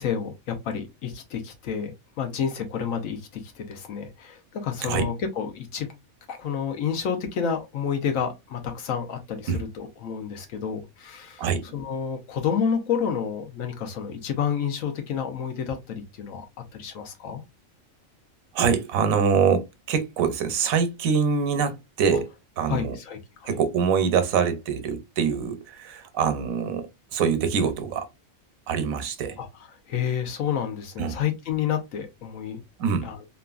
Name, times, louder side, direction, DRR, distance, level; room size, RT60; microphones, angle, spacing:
voice 1, 0.0-5.9 6.3-11.4 11.7-16.5 16.7-17.4 22.7-23.6 29.4-29.5 29.9-32.6 33.0-33.2, left 7 dB, 80° left, 1.1 m, -29 dB
voice 2, 18.5-22.3 22.6-23.0 23.4-28.1 28.7-29.4 31.0-31.2 32.8-33.1, right 6 dB, 85° right, 1.1 m, -24 dB
3.0 x 2.5 x 2.3 m
omnidirectional pair, 1.4 m